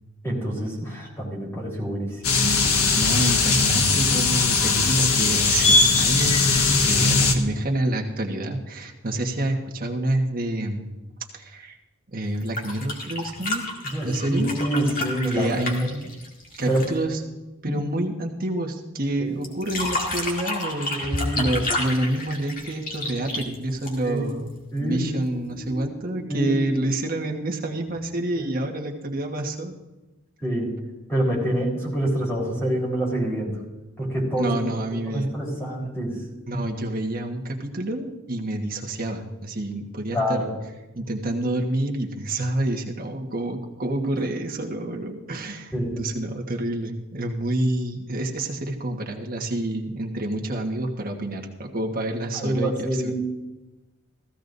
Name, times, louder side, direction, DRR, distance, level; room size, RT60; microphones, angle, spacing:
voice 1, 0.2-2.4 13.9-15.6 16.6-16.9 17.7-17.8 19.2-19.4 20.9-21.4 21.8-21.9 24.0-24.3 24.7-25.2 25.6-25.7 26.0-26.5 28.4-28.5 30.4-30.7 31.1-33.6 34.0-34.5 35.1-36.2 40.1-40.5 45.7-45.9 52.3-53.1, right 1 dB, 10° left, -3 dB, 3.9 m, -26 dB
sound 1, 2.2-7.4, left 3 dB, 90° left, 1.4 m, -19 dB
voice 2, 2.9-11.0 11.3-11.8 12.1-13.6 14.0-14.6 15.3-16.1 16.5-17.2 17.6-24.5 24.8-29.7 34.4-35.3 36.5-40.4 40.9-53.1, right 1 dB, 45° right, 2 dB, 1.4 m, -28 dB
sound 2, 12.3-17.0 19.4-24.3 25.7-25.8, left 2 dB, 40° left, 2.1 m, -30 dB
15.5 x 15.5 x 2.7 m, 1.1 s
head